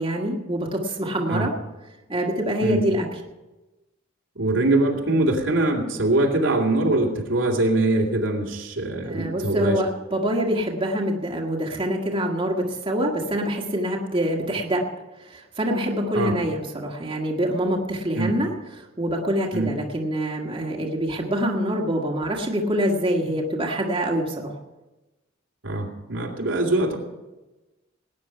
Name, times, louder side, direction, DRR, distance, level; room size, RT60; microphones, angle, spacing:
voice 1, 0.0-1.5 2.1-3.1 9.1-14.8 15.2-24.5, equal, 25° right, -1 dB, 1.8 m, -25 dB
voice 2, 4.3-9.8 16.1-16.3 18.1-18.3 19.5-19.7 25.6-27.0, right 2 dB, 85° right, -1 dB, 2.7 m, -22 dB
19.0 x 9.5 x 5.6 m, 1.1 s
head